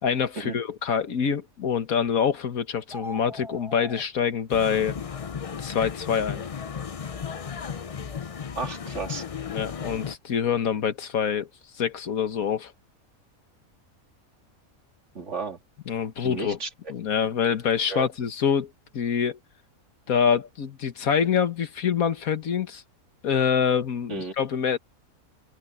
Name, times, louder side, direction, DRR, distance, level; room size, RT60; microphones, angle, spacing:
voice 1, 0.0-5.0 5.6-6.4 9.5-11.5 11.8-12.7 15.9-16.6 16.9-19.4 20.1-22.8 23.2-24.8, left 7 dB, 80° left, 1.8 m, -25 dB
sound 1, 2.8-4.0, equal, ahead, 3.8 m, -39 dB
sound 2, 4.5-10.2, left 7 dB, 45° left, 0.4 m, -34 dB
voice 2, 8.6-9.2 15.1-15.6 16.2-16.7 17.9-18.1 24.1-24.3, right 4 dB, 55° right, 2.8 m, -33 dB
omnidirectional pair, 1.5 m